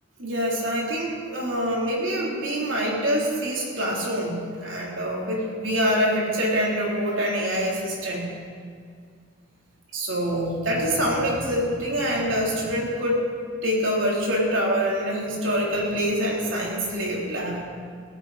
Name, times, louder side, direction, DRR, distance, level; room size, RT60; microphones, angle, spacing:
voice 1, 0.2-8.3 9.9-13.2 13.6-17.6, equal, 70° right, -3 dB, 3.8 m, -25 dB
16.5 x 15.0 x 4.4 m, 2.1 s
head